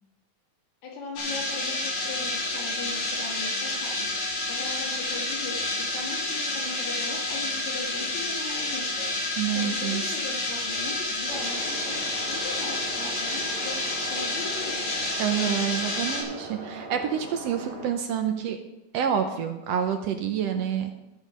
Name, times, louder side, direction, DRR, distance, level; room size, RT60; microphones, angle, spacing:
voice 1, 0.8-4.0 4.4-9.1 9.5-14.9, left 3 dB, 65° left, -1 dB, 3.2 m, -39 dB
sound 1, 1.2-16.2, left 2 dB, 85° left, 3.5 m, -29 dB
voice 2, 9.4-10.0 15.2-18.6 18.9-20.9, right 8 dB, 75° right, 6 dB, 1.6 m, -28 dB
sound 2, 11.3-17.9, right 2 dB, 30° right, 0.9 m, -40 dB
14.0 x 6.4 x 5.0 m, 0.96 s
omnidirectional pair, 3.5 m